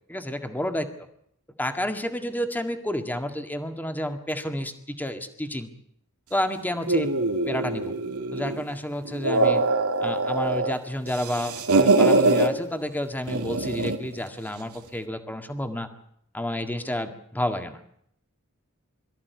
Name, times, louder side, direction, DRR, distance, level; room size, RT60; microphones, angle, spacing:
voice 1, 0.1-0.9 1.6-5.7 6.3-7.1 7.5-7.9 8.3-9.6 10.0-15.9 16.3-17.8, left 1 dB, 10° left, 7 dB, 1.9 m, -30 dB
sound 1, 6.9-8.6 9.1-10.7 11.1-12.5 13.3-14.1, right 2 dB, 80° right, 2.7 m, -23 dB
23.5 x 14.0 x 9.4 m, 0.70 s
head